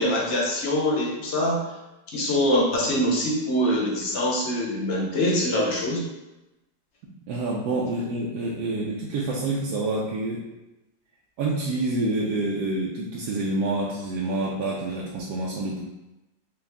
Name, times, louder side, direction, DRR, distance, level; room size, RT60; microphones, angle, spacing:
voice 1, 0.0-1.6 2.1-6.0, equal, 50° left, -3 dB, 0.9 m, -24 dB
voice 2, 7.3-10.5 11.4-15.8, right 2 dB, 70° right, -4 dB, 1.0 m, -27 dB
3.5 x 3.0 x 3.4 m, 1.0 s
omnidirectional pair, 2.1 m